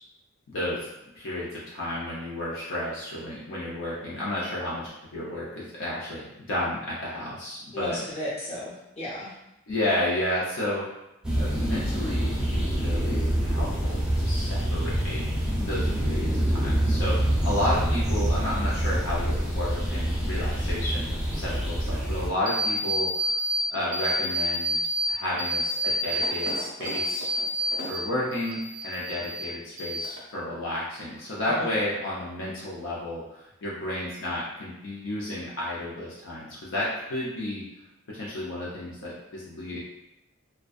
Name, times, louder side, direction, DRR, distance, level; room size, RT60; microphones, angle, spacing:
voice 1, 0.5-0.9 1.2-8.0 9.7-10.9 11.3-15.2 15.6-23.4 23.7-24.8 25.1-27.3 27.9-37.6 38.1-39.8, left 1 dB, 60° left, -6 dB, 0.5 m, -32 dB
voice 2, 7.7-9.3 31.5-31.7, left 1 dB, 30° left, -8 dB, 0.8 m, -34 dB
sound 1, 11.2-22.3, right 1 dB, 5° right, 0.4 m, -26 dB
sound 2, 22.5-23.6 23.9-25.1 25.4-28.0 28.3-29.5 29.8-30.4, equal, 80° right, 0.6 m, -29 dB
2.5 x 2.2 x 2.3 m, 0.88 s
head